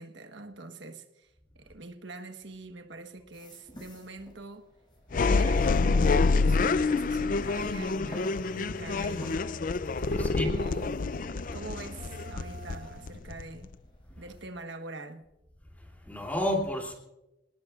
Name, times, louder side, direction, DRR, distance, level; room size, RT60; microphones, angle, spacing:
voice 1, 0.0-4.7 5.1-9.5 10.1-11.0 11.5-13.7 14.2-15.2, right 2 dB, 80° right, 1.3 m, -44 dB
sound 1, 2.4-5.3 5.6-13.7, right 2 dB, 50° right, 2.1 m, -50 dB
sound 2, 3.3-14.4, equal, 25° left, 6.6 m, -54 dB
sound 3, 5.1-13.7, left 3 dB, 45° left, 0.4 m, -27 dB
voice 2, 16.0-16.9, left 1 dB, 10° left, 2.9 m, -31 dB
27.0 x 19.0 x 2.4 m
head